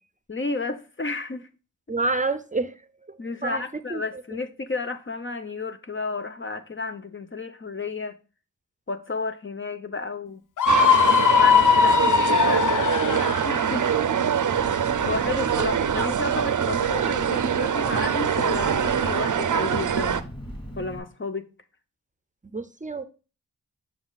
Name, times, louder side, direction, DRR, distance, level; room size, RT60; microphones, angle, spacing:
voice 1, 0.3-1.5 3.2-8.2 8.9-10.4 11.3-13.9 14.6-20.2 20.8-21.5, left 3 dB, 35° left, 0.8 m, -32 dB
voice 2, 1.9-2.8 3.1-3.2 3.4-3.6 3.9-4.2 13.1-13.2 13.9-14.0 22.4-23.0, right 3 dB, 25° right, 0.6 m, -29 dB
Screaming, 10.6-13.5, left 8 dB, 70° left, 0.6 m, -19 dB
sound 1, 10.7-20.2, right 8 dB, 65° right, 0.6 m, -24 dB
Engine, 14.6-21.0, equal, 15° left, 2.6 m, -40 dB
7.7 x 6.2 x 2.3 m
wide cardioid pair, 65°, 32 cm